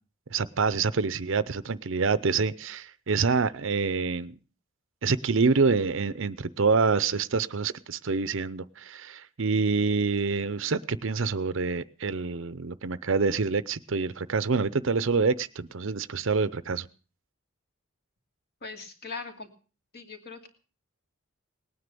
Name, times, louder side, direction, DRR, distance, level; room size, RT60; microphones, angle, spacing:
voice 1, 0.3-4.3 5.0-16.9, right 4 dB, 65° right, 16 dB, 0.7 m, -26 dB
voice 2, 18.6-19.5 19.9-20.5, left 4 dB, 50° left, 5 dB, 2.5 m, -40 dB
19.0 x 9.7 x 6.8 m, 0.38 s
head